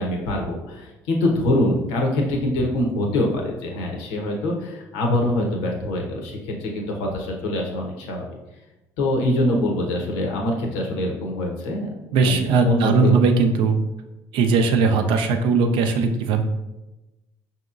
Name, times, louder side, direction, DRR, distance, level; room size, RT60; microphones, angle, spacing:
voice 1, 0.0-8.2 9.0-11.9 12.2-13.2, left 1 dB, 75° left, 1 dB, 0.8 m, -24 dB
voice 2, 12.1-13.8 14.3-16.4, right 4 dB, 65° right, 6 dB, 0.5 m, -19 dB
5.2 x 2.8 x 2.5 m, 1.0 s
hypercardioid pair, 65°, 9 cm